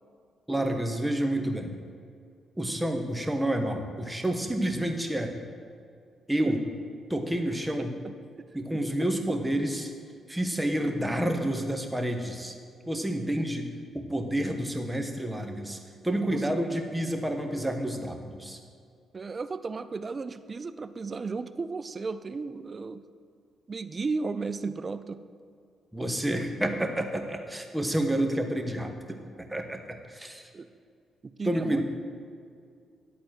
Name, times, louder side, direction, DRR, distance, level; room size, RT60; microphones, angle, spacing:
voice 1, 0.5-1.8 2.6-5.3 6.3-6.6 7.1-7.9 8.5-9.9 10.3-12.5 12.9-13.7 13.9-18.6 25.9-30.5 31.4-31.8, right 1 dB, 10° right, 4 dB, 1.3 m, -29 dB
voice 2, 7.8-8.1 10.9-11.0 13.3-13.5 16.3-16.5 19.1-23.0 23.7-25.2 30.5-30.7 31.2-31.8, right 4 dB, 40° right, 13 dB, 0.5 m, -34 dB
11.0 x 4.2 x 7.7 m, 2.3 s
supercardioid pair, 55°, 0 cm